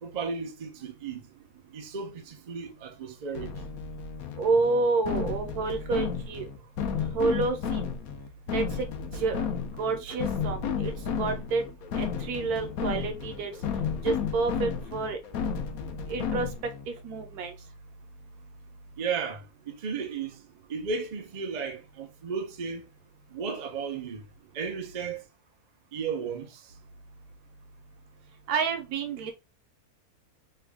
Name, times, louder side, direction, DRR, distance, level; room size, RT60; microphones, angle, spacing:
voice 1, 0.0-1.2 1.7-3.5 19.0-20.4 20.7-22.9 23.3-24.2 24.5-25.2 25.9-26.6, right 5 dB, 55° right, 0.4 m, -34 dB
sound 1, 3.3-16.8, left 6 dB, 70° left, 1.0 m, -32 dB
voice 2, 4.4-6.4 7.1-7.8 8.5-8.9 9.1-9.5 9.8-11.6 11.9-13.5 14.0-15.2 16.1-16.5 16.9-17.5 28.5-29.3, right 4 dB, 75° right, 1.2 m, -29 dB
3.4 x 2.3 x 3.4 m
omnidirectional pair, 1.7 m